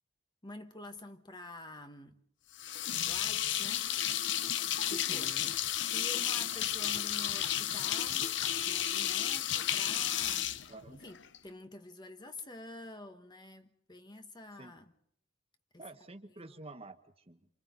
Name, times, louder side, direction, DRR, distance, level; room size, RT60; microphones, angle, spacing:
voice 1, 0.4-2.2 3.0-3.9 4.6-5.3 5.8-8.3 8.6-10.5 11.0-14.9 16.4-16.5, left 2 dB, 20° left, 1.3 m, -48 dB
sound 1, 2.6-11.4, left 11 dB, 60° left, 0.8 m, -32 dB
voice 2, 5.0-5.6 10.7-11.0 14.5-14.7 15.8-17.5, right 2 dB, 30° right, 1.3 m, -49 dB
28.0 x 28.0 x 4.0 m
head